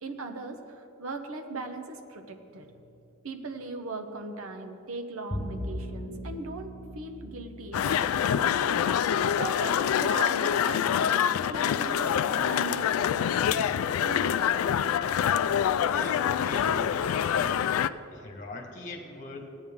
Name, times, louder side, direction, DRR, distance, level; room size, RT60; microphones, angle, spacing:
voice 1, 0.0-2.7 3.2-8.6 9.2-14.4, right 3 dB, 80° right, 6 dB, 0.9 m, -39 dB
Bowed string instrument, 5.3-11.7, equal, 15° left, 0.7 m, -41 dB
sound 1, 7.7-17.9, left 9 dB, 80° left, 0.3 m, -26 dB
voice 2, 15.9-17.7 18.1-19.6, left 2 dB, 35° left, 2 dB, 1.3 m, -40 dB
16.0 x 9.1 x 3.6 m, 2.7 s
head